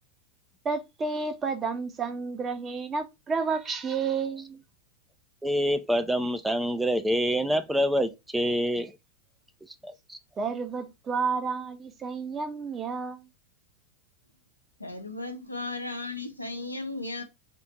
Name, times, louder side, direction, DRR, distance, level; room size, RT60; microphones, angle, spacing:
voice 1, 0.6-4.6 10.4-13.3, right 5 dB, 20° right, 0.7 m, -31 dB
voice 2, 5.4-8.9 9.8-10.2, equal, 5° right, 0.3 m, -26 dB
voice 3, 14.8-17.2, left 2 dB, 85° left, 0.7 m, -35 dB
3.7 x 2.5 x 4.0 m
figure-of-eight pair, 90°, 0 cm